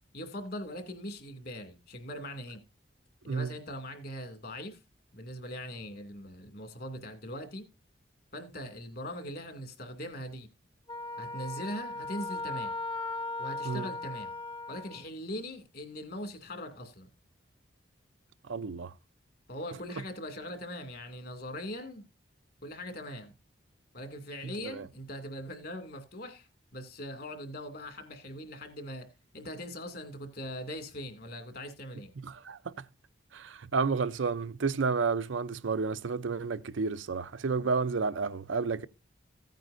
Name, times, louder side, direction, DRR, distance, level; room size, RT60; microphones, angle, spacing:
voice 1, 0.1-2.6 3.2-4.8 5.1-7.6 8.3-10.5 11.2-12.8 13.4-14.3 14.7-17.1 19.5-22.1 22.6-23.3 23.9-29.1 29.3-32.1 37.5-37.7, equal, 55° left, 2.3 m, -41 dB
Wind instrument woodwind instrument, 10.9-15.0, left 2 dB, 25° left, 0.8 m, -37 dB
voice 2, 18.5-18.9 24.6-24.8 32.2-32.6 33.3-38.9, right 4 dB, 80° right, 0.5 m, -31 dB
15.5 x 9.1 x 2.6 m
head